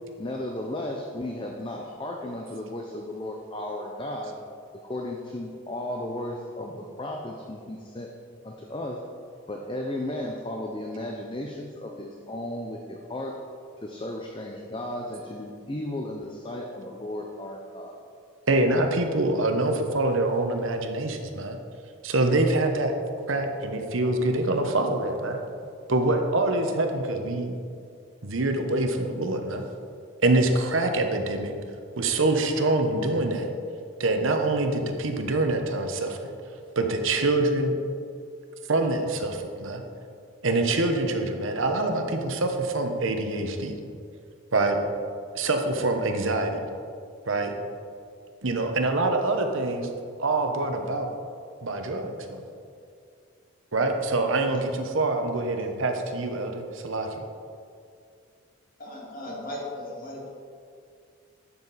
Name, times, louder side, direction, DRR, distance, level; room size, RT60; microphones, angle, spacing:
voice 1, 0.2-4.4 4.7-8.1 8.4-9.1 9.5-13.4 13.8-18.0, left 1 dB, 25° left, 1 dB, 0.6 m, -34 dB
voice 2, 18.5-21.6 22.0-22.9 23.3-25.4 25.9-27.5 28.2-29.6 30.2-31.5 32.0-33.5 34.0-36.3 36.8-37.8 38.7-39.8 40.4-43.7 44.5-44.8 45.3-46.6 47.3-47.5 48.4-49.9 50.2-51.1 51.6-52.4 53.7-57.2, right 2 dB, 70° right, 5 dB, 1.0 m, -25 dB
voice 3, 58.8-60.3, left 1 dB, 40° left, -3 dB, 2.3 m, -37 dB
12.0 x 7.3 x 4.1 m, 2.3 s
head